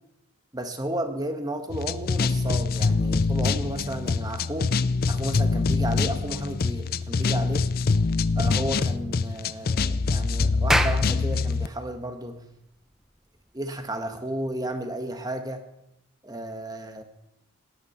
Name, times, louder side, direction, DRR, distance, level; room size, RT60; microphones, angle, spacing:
voice 1, 0.5-4.7 5.1-7.7 8.4-12.4 13.5-15.7 16.2-17.0, right 1 dB, 20° right, 6 dB, 1.5 m, -33 dB
sound 1, 1.7-11.7, left 4 dB, 45° left, 0.5 m, -24 dB
Clapping, 10.6-15.4, right 1 dB, ahead, 0.6 m, -31 dB
18.0 x 11.5 x 5.8 m, 0.86 s
head